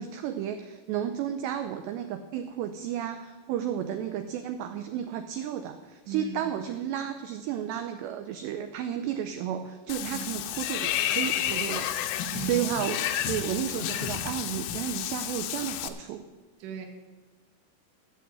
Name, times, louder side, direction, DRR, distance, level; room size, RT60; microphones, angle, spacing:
voice 1, 0.0-11.9 12.4-16.2, right 10 dB, 85° right, 8 dB, 2.5 m, -32 dB
Water / Bathtub (filling or washing), 9.9-15.9, left 11 dB, 85° left, 3.1 m, -31 dB
voice 2, 10.0-10.3 12.3-12.7 16.6-16.8, right 5 dB, 65° right, 1 dB, 1.7 m, -37 dB
12.5 x 6.2 x 7.9 m, 1.2 s
omnidirectional pair, 5.5 m